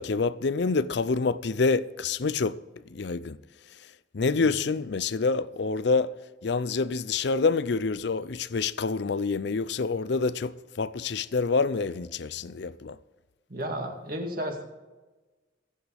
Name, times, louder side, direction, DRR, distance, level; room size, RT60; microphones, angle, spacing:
voice 1, 0.0-2.6 2.9-3.4 4.1-6.1 6.4-13.0, left 4 dB, 55° left, 0.5 m, -27 dB
voice 2, 13.5-14.6, right 1 dB, 45° right, 2.2 m, -33 dB
24.0 x 8.5 x 3.5 m
head